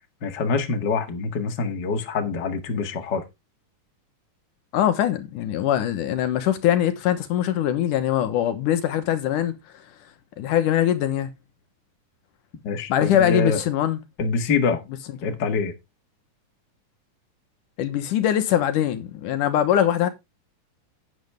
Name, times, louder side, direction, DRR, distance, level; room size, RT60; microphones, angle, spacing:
voice 1, 0.2-3.2 12.6-13.6 14.2-14.8 15.2-15.7, left 4 dB, 40° left, 2.0 m, -25 dB
voice 2, 4.7-9.6 10.4-11.3 12.9-14.0 15.2-15.4 17.8-20.1, left 11 dB, 80° left, 2.7 m, -22 dB
10.5 x 8.8 x 3.5 m
omnidirectional pair, 3.6 m